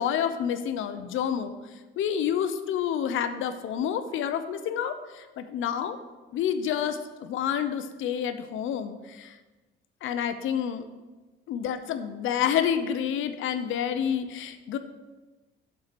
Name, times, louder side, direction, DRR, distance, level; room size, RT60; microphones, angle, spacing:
voice 1, 0.0-1.5 2.0-6.0 6.3-9.3 10.0-10.9 11.5-14.8, left 8 dB, 80° left, 10 dB, 0.7 m, -29 dB
7.4 x 4.5 x 6.7 m, 1.2 s
cardioid pair, 90°, 20 cm